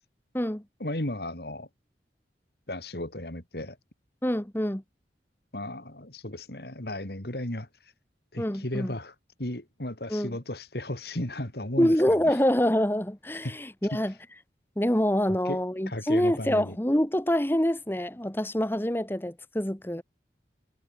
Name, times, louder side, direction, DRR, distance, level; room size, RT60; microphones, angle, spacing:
voice 1, 0.8-1.7 2.7-3.8 5.5-7.7 8.3-9.1 9.4-12.3 13.4-13.6 15.5-15.6 15.9-16.8, left 1 dB, 60° left, 3.4 m, -35 dB
voice 2, 4.2-4.8 8.4-8.9 10.1-10.4 11.8-14.1 14.8-20.0, equal, 10° left, 1.3 m, -26 dB
head